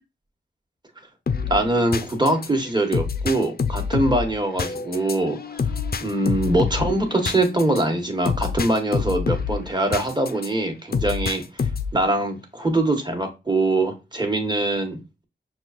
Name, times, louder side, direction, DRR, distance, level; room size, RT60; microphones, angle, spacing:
sound 1, 1.3-10.5 10.9-12.0, left 5 dB, 55° left, 0.5 m, -27 dB
voice 1, 1.5-5.6 6.0-15.0, right 2 dB, 20° right, 4 dB, 1.1 m, -23 dB
6.0 x 2.4 x 2.4 m, 0.27 s
wide cardioid pair, 65°, 19 cm